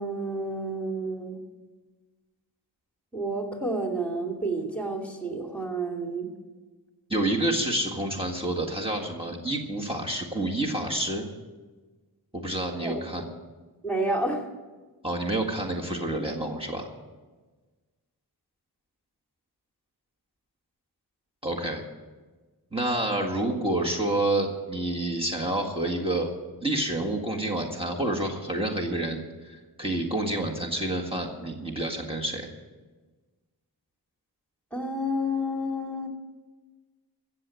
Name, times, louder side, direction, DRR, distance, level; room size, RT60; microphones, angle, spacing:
voice 1, 0.0-1.4 3.1-6.3 12.8-13.0 13.8-14.5 34.7-36.1, right 1 dB, 5° left, 2 dB, 2.5 m, -30 dB
voice 2, 7.1-11.3 12.3-13.2 15.0-16.9 21.4-21.8 22.7-26.3 26.6-32.5, right 1 dB, 15° right, -1 dB, 1.8 m, -28 dB
15.5 x 7.6 x 9.1 m, 1.3 s
wide cardioid pair, 55°, 39 cm